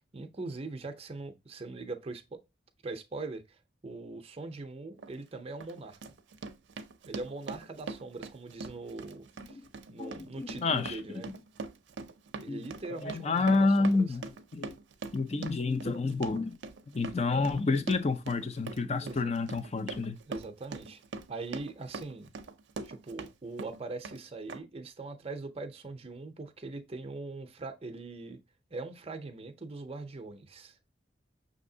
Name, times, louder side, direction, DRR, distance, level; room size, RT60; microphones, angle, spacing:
voice 1, 0.1-2.4 2.8-6.0 7.1-9.6 9.9-11.3 12.4-14.1 19.0-19.3 20.3-21.0 21.3-22.3 22.8-28.4 28.7-30.8, right 3 dB, 35° right, 0.6 m, -41 dB
Run, 5.0-5.1 5.6-23.3 23.6-24.2 24.5-24.6, right 4 dB, 80° right, 0.5 m, -42 dB
voice 2, 10.0-11.2 12.5-12.6 13.0-14.7 15.1-16.6 16.9-20.2, left 3 dB, 35° left, 0.5 m, -29 dB
6.1 x 2.8 x 2.7 m
head